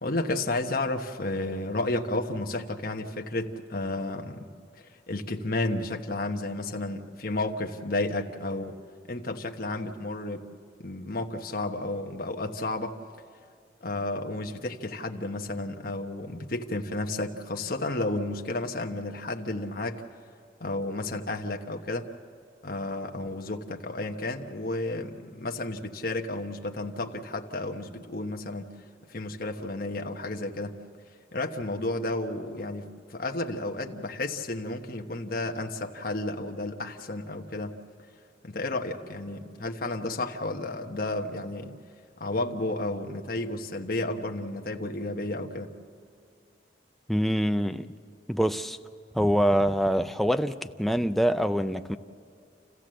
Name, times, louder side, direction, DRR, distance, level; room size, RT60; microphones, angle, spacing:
voice 1, 0.0-8.7 9.1-10.5 10.8-13.0 13.8-20.0 20.6-22.1 22.6-28.7 29.1-30.8 31.3-37.8 38.4-41.7 42.2-45.7, left 2 dB, 50° left, 1.2 m, -32 dB
voice 2, 47.1-47.9 48.3-48.8 49.1-52.0, equal, ahead, 0.5 m, -25 dB
28.5 x 15.5 x 7.7 m
head